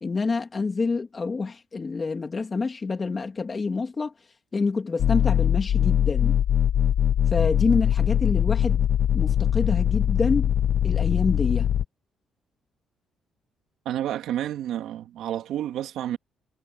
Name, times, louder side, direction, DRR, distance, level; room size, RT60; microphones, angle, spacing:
voice 1, 0.0-4.1 4.5-6.4 7.3-8.9 9.1-10.5 10.8-11.7, left 4 dB, 30° left, 2.8 m, -27 dB
sound 1, 5.0-11.9, left 9 dB, 65° left, 0.6 m, -22 dB
voice 2, 13.8-16.2, right 11 dB, 80° right, 2.6 m, -30 dB
cardioid pair, 90°, 0 cm